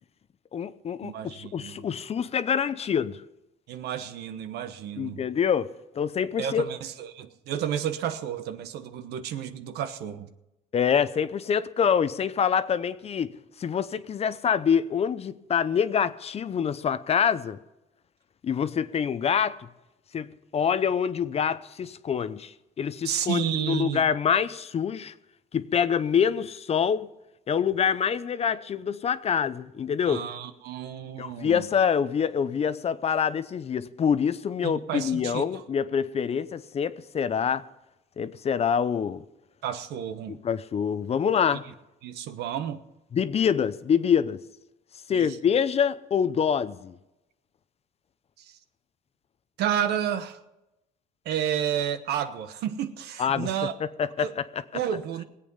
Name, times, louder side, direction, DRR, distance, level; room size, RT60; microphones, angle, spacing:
voice 1, 0.5-3.2 5.0-6.7 10.7-17.6 18.4-19.7 20.1-25.1 25.5-27.1 27.5-30.2 31.2-37.6 38.2-39.2 40.3-41.6 43.1-44.4 45.1-47.0 53.2-53.5 53.8-54.6, left 7 dB, 35° left, 0.6 m, -26 dB
voice 2, 1.0-1.8 3.7-5.2 6.4-10.3 23.0-24.0 30.0-31.6 34.6-35.6 39.6-40.4 42.0-42.8 45.1-45.4 48.4-48.6 49.6-50.4 51.2-53.7 54.2-54.3 54.7-55.2, right 9 dB, 75° right, 1.1 m, -31 dB
19.5 x 8.5 x 5.5 m
cardioid pair, 110°, 17 cm